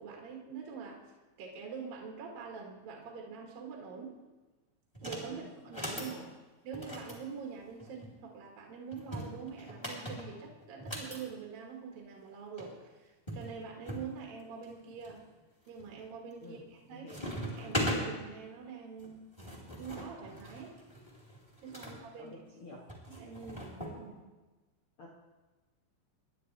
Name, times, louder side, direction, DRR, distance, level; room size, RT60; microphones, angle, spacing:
voice 1, 0.0-4.2 5.0-6.2 6.6-15.3 15.7-17.1 17.5-19.2 19.8-20.8 21.6-22.3 23.1-24.3, right 6 dB, 60° right, 0 dB, 3.1 m, -45 dB
sound 1, 4.9-5.3 5.6-6.1 6.7-8.1 8.9-11.2 12.3-12.4 12.6-12.7 13.3-14.1 14.6-15.1 15.7-16.1 16.4-16.8 17.1-18.0 19.0-22.0 22.9-24.0, equal, 5° left, 2.8 m, -39 dB
voice 2, 16.9-17.2 21.8-22.8 25.0-25.1, left 1 dB, 65° left, -4 dB, 1.3 m, -50 dB
28.0 x 11.0 x 3.3 m, 1.2 s
omnidirectional pair, 5.0 m